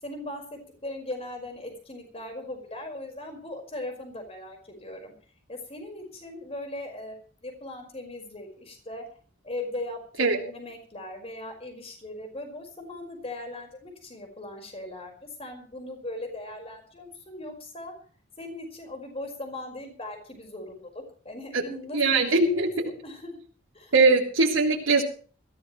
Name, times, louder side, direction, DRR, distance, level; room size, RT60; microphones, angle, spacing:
voice 1, 0.0-5.1 5.5-9.0 9.4-17.9 18.4-23.4 23.7-23.9, left 1 dB, 30° left, 4 dB, 5.1 m, -39 dB
voice 2, 21.9-22.9 23.9-25.0, right 3 dB, 85° right, -1 dB, 3.4 m, -21 dB
21.5 x 15.0 x 3.2 m, 0.41 s
head